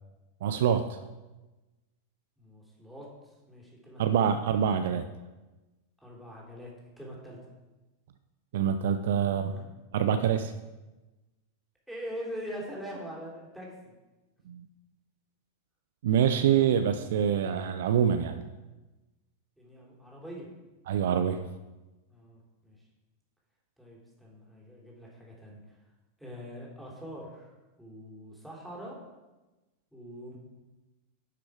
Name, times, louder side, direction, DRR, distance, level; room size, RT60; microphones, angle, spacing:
voice 1, 0.4-1.0 4.0-5.1 8.5-9.5 9.9-10.5 14.5-14.7 16.0-18.4 20.9-21.4, right 8 dB, 55° right, 10 dB, 0.5 m, -25 dB
voice 2, 2.4-3.1 3.5-4.0 6.0-6.7 7.0-7.4 9.5-9.6 11.9-13.9 16.5-16.7 19.6-20.5 22.1-22.8 23.8-25.8 26.2-27.5 27.8-29.0 29.9-30.4, equal, ahead, -4 dB, 3.1 m, -43 dB
11.0 x 6.0 x 4.8 m, 1.1 s
figure-of-eight pair, 90°, 0 cm